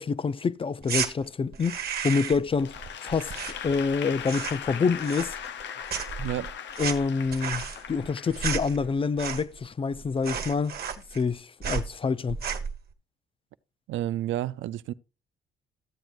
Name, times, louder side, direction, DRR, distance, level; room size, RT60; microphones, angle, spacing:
voice 1, 0.0-2.7 3.0-3.3 3.6-5.4 6.8-10.7 11.1-12.4, left 5 dB, 25° left, 0.4 m, -27 dB
sound 1, 0.8-1.1 1.5-2.5 2.8-3.9 4.2-4.7 5.0-5.6 5.9-9.7 9.9-10.0 10.2-11.3 11.6-11.9 12.3-12.8, right 7 dB, 50° right, 1.3 m, -33 dB
Applause / Crowd, 2.6-9.0, left 8 dB, 65° left, 0.6 m, -39 dB
voice 2, 6.2-6.5 13.9-14.9, right 13 dB, 75° right, 0.5 m, -30 dB
13.0 x 7.7 x 2.4 m
cardioid pair, 90°, 20 cm